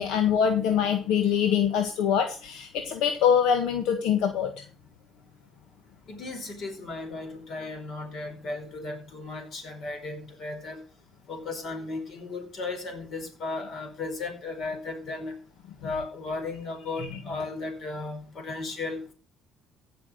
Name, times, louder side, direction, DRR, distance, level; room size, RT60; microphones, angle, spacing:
voice 1, 0.0-4.5 17.0-17.1, left 8 dB, 80° left, 6 dB, 1.5 m, -24 dB
voice 2, 6.1-10.8 11.3-15.3 15.8-19.1, left 3 dB, 50° left, 5 dB, 4.9 m, -35 dB
16.0 x 6.1 x 6.4 m, 0.39 s
cardioid pair, 120°, 0 cm